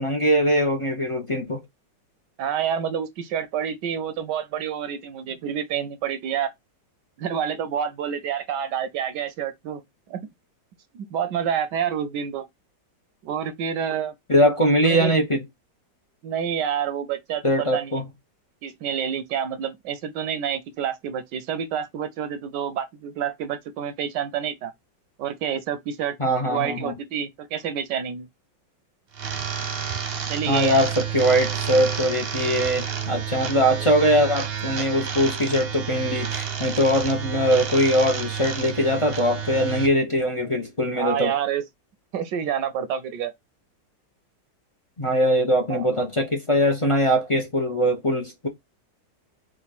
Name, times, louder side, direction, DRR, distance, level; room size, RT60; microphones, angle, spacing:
voice 1, 0.0-1.6 14.3-15.4 17.4-18.1 26.2-27.0 30.5-41.3 45.0-48.5, equal, 55° left, 0.3 m, -22 dB
voice 2, 2.4-6.5 7.2-9.8 10.1-10.2 10.9-12.5 13.2-14.1 14.8-15.1 16.2-18.0 18.6-24.7 25.2-26.2 26.4-28.3 30.3-30.8 40.9-41.6 42.1-43.3 45.7-45.9, right 8 dB, 75° right, 1.2 m, -28 dB
sound 1, 29.1-39.9, right 8 dB, 45° right, 0.8 m, -30 dB
5.2 x 2.4 x 4.1 m
omnidirectional pair, 2.0 m